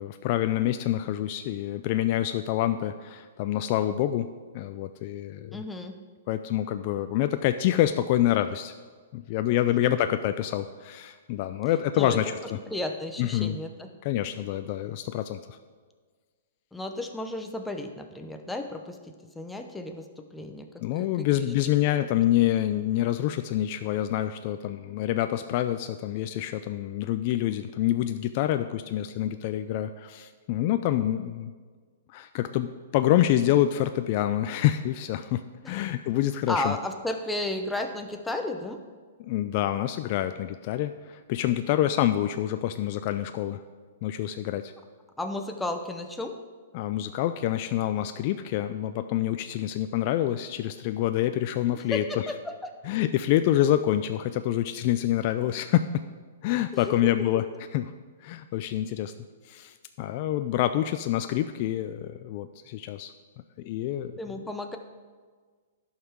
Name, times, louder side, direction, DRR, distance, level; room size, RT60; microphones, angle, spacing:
voice 1, 0.0-4.3 4.5-5.6 6.3-8.7 9.1-12.6 13.2-13.6 14.0-15.6 20.8-31.5 32.1-36.8 39.2-43.6 44.0-44.7 46.7-52.0 52.9-55.9 56.4-57.4 57.7-57.8 58.2-59.1 59.4-63.1 63.6-64.1, left 12 dB, 45° left, 9 dB, 0.4 m, -27 dB
voice 2, 5.5-6.0 9.8-9.9 12.0-12.2 12.7-13.9 16.7-20.7 20.9-21.5 21.8-22.2 35.6-35.7 36.5-38.8 45.2-46.3 51.7-52.7 56.7-56.9 57.3-57.4 64.2-64.8, left 2 dB, 5° left, 5 dB, 0.8 m, -34 dB
11.0 x 5.6 x 4.6 m, 1.5 s
hypercardioid pair, 140°, 0 cm